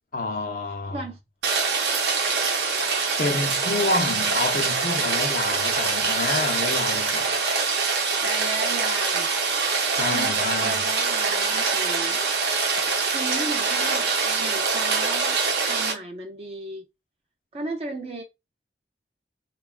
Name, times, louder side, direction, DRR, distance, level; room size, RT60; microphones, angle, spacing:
voice 1, 0.1-1.0 3.2-7.4 9.9-10.8, left 3 dB, 50° left, 0.4 m, -28 dB
voice 2, 0.9-1.2 2.8-3.0 8.2-9.3 9.7-12.2 13.1-15.4 15.7-16.9 17.5-18.2, right 2 dB, 35° right, 0.4 m, -35 dB
Rain, 1.4-15.9, right 4 dB, 70° right, 0.6 m, -24 dB
2.8 x 2.2 x 2.3 m
head